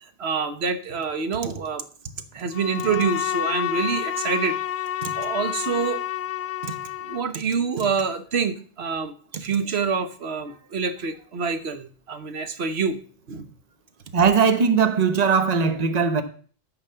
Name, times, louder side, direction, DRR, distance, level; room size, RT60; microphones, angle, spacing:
voice 1, 0.2-1.8 2.3-4.6 5.0-6.0 6.6-6.8 7.0-13.0 13.3-13.5, right 5 dB, 65° right, 1.3 m, -26 dB
Bowed string instrument, 2.5-7.3, left 11 dB, 85° left, 0.9 m, -29 dB
voice 2, 14.1-16.2, right 6 dB, 40° right, 1.0 m, -19 dB
12.5 x 4.8 x 6.7 m
omnidirectional pair, 1.2 m